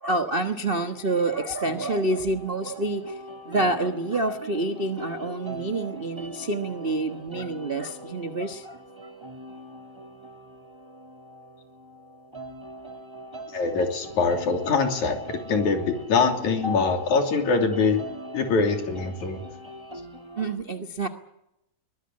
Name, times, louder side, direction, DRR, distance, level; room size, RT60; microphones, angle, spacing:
voice 1, 0.0-9.1 20.4-21.1, right 2 dB, 50° right, 7 dB, 0.6 m, -28 dB
sound 1, 0.6-20.6, equal, 10° right, 2.2 m, -41 dB
voice 2, 13.5-18.0 18.3-19.4, left 4 dB, 85° left, 4 dB, 4.5 m, -23 dB
23.5 x 19.0 x 8.7 m, 0.83 s
omnidirectional pair, 3.3 m